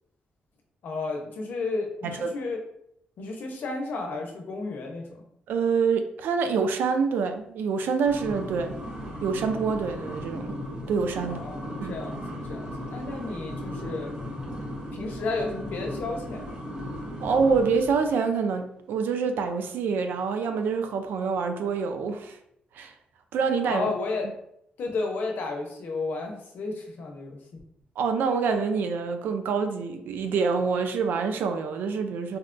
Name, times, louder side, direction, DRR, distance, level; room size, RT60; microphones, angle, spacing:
voice 1, 0.8-2.6 3.2-5.2 11.2-14.1 14.9-16.4 23.6-24.3 24.8-27.4, left 3 dB, 70° left, 2 dB, 0.7 m, -32 dB
voice 2, 2.0-2.3 5.5-8.7 9.2-10.6 10.9-11.4 11.8-11.9 17.2-22.4 22.7-22.9 23.3-23.9 28.0-32.4, right 5 dB, 80° right, 7 dB, 0.4 m, -26 dB
sound 1, 8.0-18.1, equal, 30° right, 0.8 m, -36 dB
4.1 x 2.1 x 2.5 m, 0.75 s
cardioid pair, 110°, 3 cm